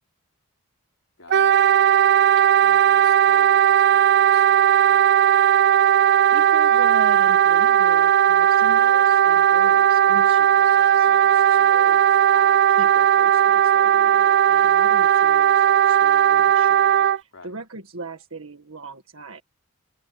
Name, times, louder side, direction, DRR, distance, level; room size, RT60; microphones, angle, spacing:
voice 1, 1.2-1.6 2.6-5.2 11.9-12.3 17.3-17.6, left 3 dB, 70° left, 4.5 m, -47 dB
Wind instrument woodwind instrument, 1.3-17.2, right 10 dB, 50° right, 0.4 m, -17 dB
voice 2, 6.0-19.4, right 3 dB, 70° right, 1.8 m, -39 dB
head